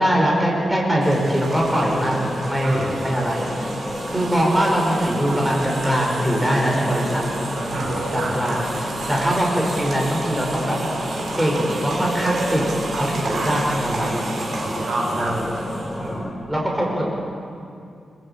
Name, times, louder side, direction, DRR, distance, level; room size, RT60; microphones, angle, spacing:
voice 1, 0.0-3.7 4.1-7.2 8.1-10.8 11.4-14.3 15.2-15.5 16.5-17.1, equal, 5° right, -2 dB, 5.2 m, -22 dB
sound 1, 1.0-16.2, right 2 dB, 50° right, 5.2 m, -31 dB
sound 2, 1.5-16.3, left 1 dB, 10° left, 3.5 m, -31 dB
voice 2, 2.6-3.0 7.7-8.4 13.2-13.3 14.6-15.3 16.0-16.3, right 2 dB, 70° right, -1 dB, 7.9 m, -28 dB
27.0 x 22.5 x 8.9 m, 2.4 s
wide cardioid pair, 165°, 0 cm